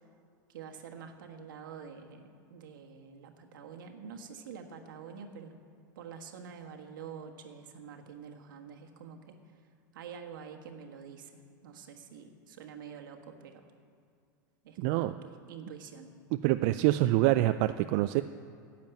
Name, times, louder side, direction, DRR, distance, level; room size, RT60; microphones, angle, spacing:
voice 1, 0.5-5.6 5.9-9.4 9.9-13.7 14.6-16.1, right 6 dB, 80° right, 3 dB, 1.4 m, -47 dB
voice 2, 14.8-15.2 16.4-18.2, right 16 dB, 55° right, 10 dB, 0.4 m, -26 dB
10.5 x 7.4 x 8.9 m, 2.3 s
hypercardioid pair, 110°, 11 cm